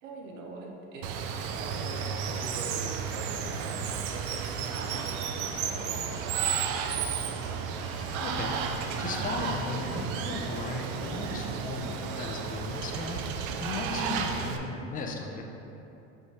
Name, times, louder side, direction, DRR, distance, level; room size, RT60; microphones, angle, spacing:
voice 1, 0.0-1.1 1.5-1.9 2.2-7.5, right 3 dB, 90° right, 0 dB, 1.0 m, -44 dB
Water, 1.0-14.6, right 6 dB, 65° right, 0.6 m, -33 dB
sound 1, 7.7-12.2, equal, ahead, 1.0 m, -51 dB
voice 2, 7.9-15.4, left 3 dB, 20° left, 1 dB, 0.5 m, -37 dB
5.5 x 5.5 x 3.2 m, 3.0 s
supercardioid pair, 120°, 38 cm